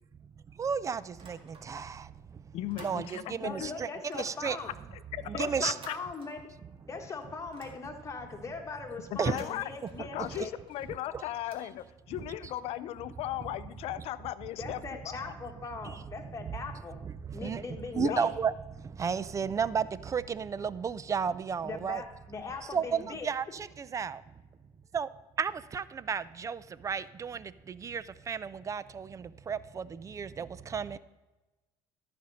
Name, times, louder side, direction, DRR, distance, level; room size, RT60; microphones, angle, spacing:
voice 1, 0.2-4.6 5.3-5.8 9.2-9.4 10.2-10.5 11.1-11.2 15.8-17.7 17.9-22.0 22.7-24.2 24.9-25.1 25.4-31.0, right 6 dB, 30° right, 0.4 m, -34 dB
sound 1, 1.2-2.0 2.3-3.5 4.0-6.9 7.2-8.3 9.1-12.3, right 3 dB, 50° right, 1.7 m, -55 dB
voice 2, 2.5-3.8 5.1-6.0 9.1-15.3 17.9-18.2, left 13 dB, 65° left, 0.5 m, -37 dB
voice 3, 3.1-4.7 5.3-6.4 6.9-10.5 14.6-17.0 17.3-18.3 21.6-23.3, left 4 dB, 25° left, 1.6 m, -40 dB
13.0 x 5.2 x 5.6 m
supercardioid pair, 90°, 11 cm